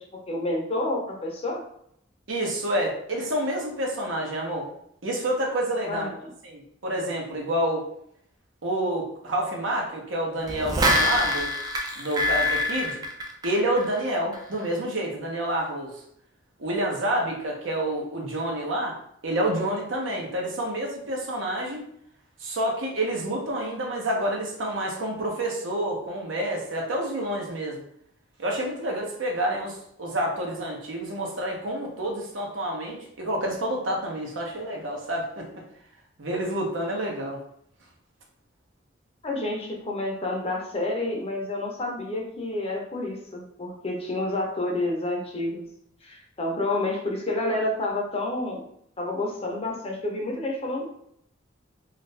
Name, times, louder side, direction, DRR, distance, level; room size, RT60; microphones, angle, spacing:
voice 1, 0.3-1.6 5.9-6.1 39.2-45.6 46.0-48.6 49.0-50.9, left 2 dB, 30° left, 0 dB, 0.6 m, -29 dB
voice 2, 2.3-4.7 5.0-6.1 6.4-7.9 8.6-11.5 12.0-13.0 13.4-16.0 16.6-19.0 19.2-21.9 22.4-27.8 28.4-35.5 36.2-37.4, right 1 dB, 70° right, 0 dB, 0.8 m, -28 dB
sound 1, 10.5-14.0 14.3-14.4, left 1 dB, 20° right, 0.4 m, -25 dB
2.7 x 2.4 x 3.2 m, 0.71 s
head